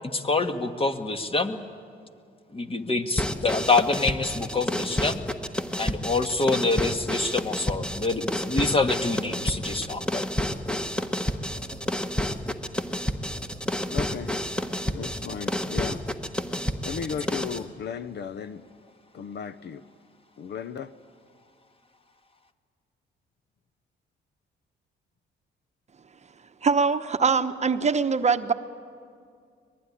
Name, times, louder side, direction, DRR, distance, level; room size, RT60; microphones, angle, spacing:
voice 1, 0.1-1.6 2.5-5.2 5.8-10.3, left 3 dB, 30° left, 7 dB, 1.7 m, -26 dB
sound 1, 3.2-17.6, left 1 dB, 5° left, 1.3 m, -30 dB
voice 2, 13.9-14.3 14.8-16.0 16.8-18.6 19.1-19.8 20.4-20.9, left 7 dB, 60° left, 14 dB, 0.8 m, -35 dB
voice 3, 26.6-28.5, right 5 dB, 35° right, 9 dB, 0.9 m, -23 dB
24.0 x 20.0 x 10.0 m, 2.2 s
cardioid pair, 90°, 20 cm